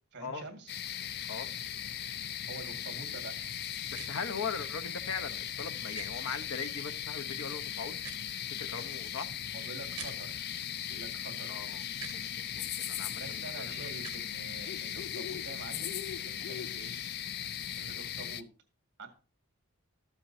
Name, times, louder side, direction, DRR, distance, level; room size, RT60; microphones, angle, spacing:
voice 1, 0.1-0.7 2.5-3.3 9.5-10.5 10.9-11.6 13.2-16.9 17.7-18.5 19.0-19.1, right 3 dB, 50° right, 2.0 m, -46 dB
sound 1, 0.7-18.4, left 10 dB, 45° left, 0.4 m, -38 dB
voice 2, 3.9-8.1 8.6-9.3 11.5-13.8 17.8-17.9, left 5 dB, 65° left, 0.8 m, -40 dB
sound 2, 3.9-4.1 5.9-6.1 7.9-8.3 9.9-10.1 11.9-12.2 13.9-14.2, right 10 dB, 80° right, 0.7 m, -45 dB
13.5 x 7.3 x 2.7 m
head